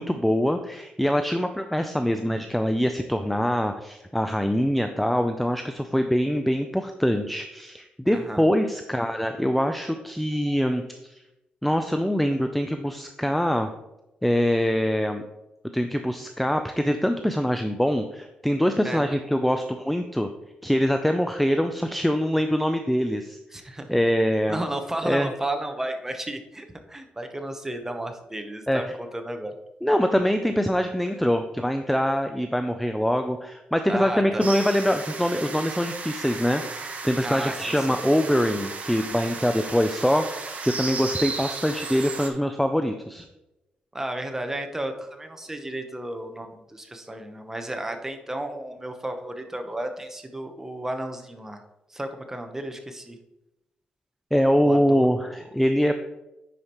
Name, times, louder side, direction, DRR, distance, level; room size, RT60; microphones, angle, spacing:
voice 1, 0.0-11.2 11.6-13.7 14.2-15.2 15.7-20.3 20.6-23.4 23.9-24.6 25.0-25.3 28.7-28.8 29.8-43.3 54.3-56.0, equal, ahead, 7 dB, 0.4 m, -24 dB
voice 2, 8.1-8.4 18.8-19.2 23.5-24.0 24.5-29.5 33.9-34.4 37.2-38.0 43.9-51.6 51.9-53.2 54.6-55.1, right 1 dB, 15° right, 6 dB, 0.9 m, -33 dB
sound 1, 34.4-42.3, right 4 dB, 45° right, 1.0 m, -35 dB
9.6 x 5.0 x 3.0 m, 0.95 s
cardioid pair, 90°, 3 cm